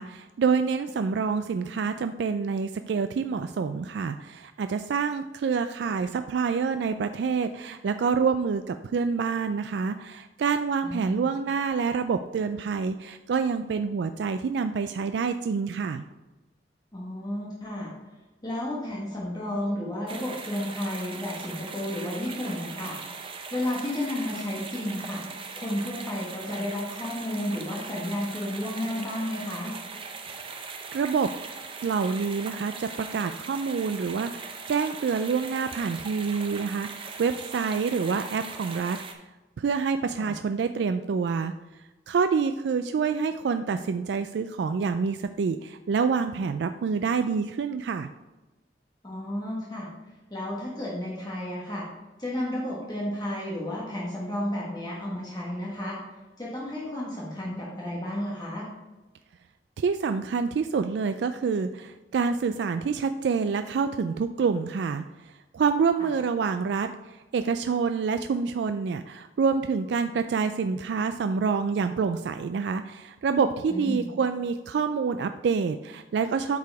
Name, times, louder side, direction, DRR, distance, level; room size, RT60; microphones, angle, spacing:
voice 1, 0.0-16.0 30.4-30.6 30.9-31.3 31.8-39.0 39.6-41.5 42.1-48.1 59.8-76.6, right 5 dB, 75° right, 9 dB, 0.3 m, -27 dB
voice 2, 10.8-11.3 16.9-17.9 18.4-23.0 23.5-25.2 25.6-29.7 40.2-40.4 49.0-49.9 50.3-51.9 52.2-56.0 56.4-58.7 73.7-74.1, left 1 dB, 25° left, -5 dB, 1.4 m, -32 dB
sound 1, 20.1-39.1, right 4 dB, 30° right, 0.6 m, -40 dB
8.2 x 4.8 x 4.6 m, 1.1 s
head